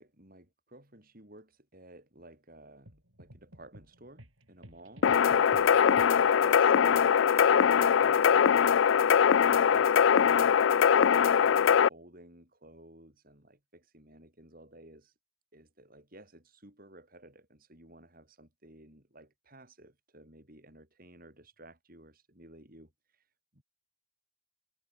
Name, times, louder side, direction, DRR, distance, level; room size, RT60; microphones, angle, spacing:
voice 1, 0.0-8.6 8.9-15.2 15.5-23.6, right 1 dB, 45° right, 6.0 m, -54 dB
sound 1, 2.9-6.5, right 1 dB, 75° right, 7.3 m, -53 dB
sound 2, 5.0-11.9, left 7 dB, 65° left, 0.4 m, -22 dB
head